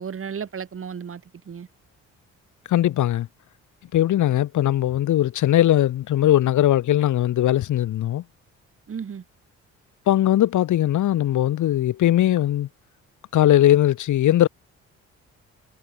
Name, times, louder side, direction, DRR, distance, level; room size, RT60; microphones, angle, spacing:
voice 1, 0.0-1.7 8.9-9.2, right 7 dB, 45° right, 4.6 m, -34 dB
voice 2, 2.7-3.3 3.9-8.2 10.1-12.7 13.3-14.5, left 13 dB, 75° left, 3.1 m, -19 dB
cardioid pair, 90°, 30 cm